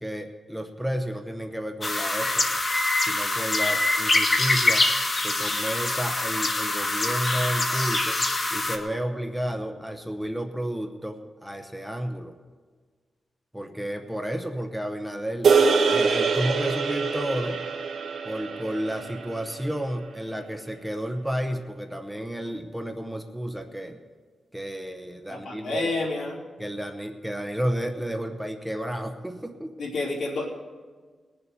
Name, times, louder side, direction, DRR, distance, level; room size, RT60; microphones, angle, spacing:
voice 1, 0.0-2.6 3.0-4.9 5.2-8.2 8.5-12.3 13.5-15.5 15.8-17.6 18.2-24.0 24.5-25.9 26.6-29.7, equal, ahead, 4 dB, 0.7 m, -31 dB
sound 1, 1.8-8.8, left 2 dB, 30° left, 1.3 m, -24 dB
sound 2, 15.4-19.9, right 5 dB, 75° right, 1.2 m, -24 dB
voice 2, 25.3-26.4 29.8-30.5, left 2 dB, 70° left, -4 dB, 3.2 m, -29 dB
19.5 x 7.0 x 6.9 m, 1.5 s
wide cardioid pair, 170°, 0 cm